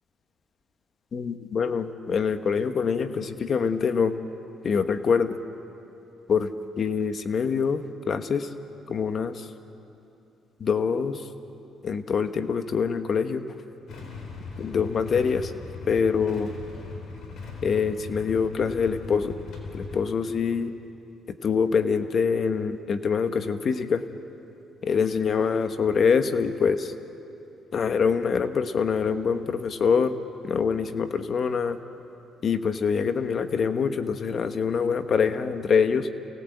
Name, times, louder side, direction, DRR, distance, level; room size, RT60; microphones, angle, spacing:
voice 1, 1.1-4.1 4.6-5.4 6.3-6.5 6.8-8.5 8.9-9.5 10.6-11.3 11.8-13.4 14.6-15.5 15.9-16.5 17.6-19.3 19.7-20.7 21.3-24.0 24.8-26.9 27.7-30.2 30.4-31.8 32.4-36.1, left 6 dB, 50° left, 9 dB, 1.3 m, -25 dB
Motorcycle / Engine starting / Idling, 13.9-20.0, left 4 dB, 70° left, 3.9 m, -39 dB
29.0 x 18.0 x 8.1 m, 2.9 s
cardioid pair, 90°, 0 cm